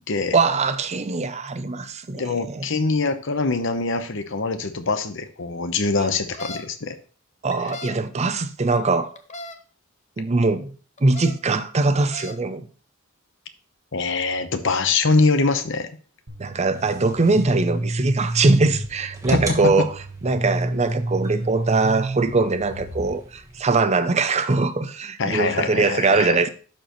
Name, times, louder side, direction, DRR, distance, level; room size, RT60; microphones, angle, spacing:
voice 1, 0.3-2.7 7.4-9.1 10.2-10.7 11.0-12.7 16.4-19.9 20.2-26.5, right 3 dB, 30° right, 0.6 m, -22 dB
voice 2, 2.1-7.0 13.9-15.9 19.3-19.7 25.2-26.4, left 3 dB, 65° left, 0.9 m, -23 dB
sound 1, 6.1-6.6 7.5-7.9 9.1-9.5 11.0-11.3 11.9-12.4, left 3 dB, 35° left, 0.8 m, -36 dB
sound 2, 16.3-23.1, right 1 dB, 85° right, 1.6 m, -30 dB
sound 3, 16.7-23.7, right 2 dB, 15° right, 1.2 m, -43 dB
12.0 x 4.5 x 3.0 m
head